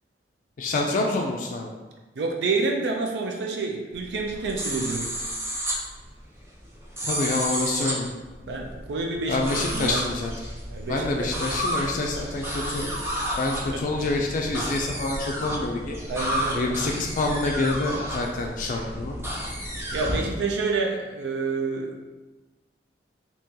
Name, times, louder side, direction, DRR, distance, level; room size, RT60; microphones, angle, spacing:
voice 1, 0.6-1.7 7.0-8.1 9.3-10.3 10.9-12.9 13.4-16.0 16.5-19.2, left 2 dB, 50° left, 1 dB, 0.3 m, -27 dB
voice 2, 2.2-5.1 8.4-10.0 10.7-11.3 13.4-13.8 16.0-16.7 19.9-21.9, right 3 dB, 70° right, 1 dB, 0.4 m, -28 dB
sound 1, 3.9-20.2, equal, 15° right, 0.6 m, -32 dB
2.9 x 2.8 x 3.6 m, 1.2 s
head